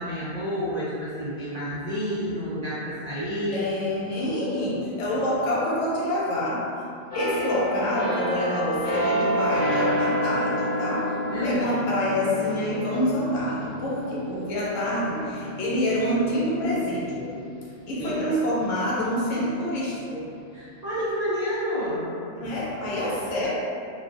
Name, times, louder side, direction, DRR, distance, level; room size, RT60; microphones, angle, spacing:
voice 1, 0.0-3.6 11.3-11.7 18.0-18.2 20.5-22.1, equal, 70° right, -10 dB, 0.3 m, -29 dB
voice 2, 3.5-6.7 7.1-11.2 11.4-17.3 17.9-20.3 22.3-23.5, left 1 dB, 85° left, -6 dB, 1.0 m, -27 dB
sound 1, 7.1-18.6 19.1-19.3, equal, 50° left, 0.5 m, -30 dB
2.4 x 2.2 x 2.4 m, 2.5 s
omnidirectional pair, 1.3 m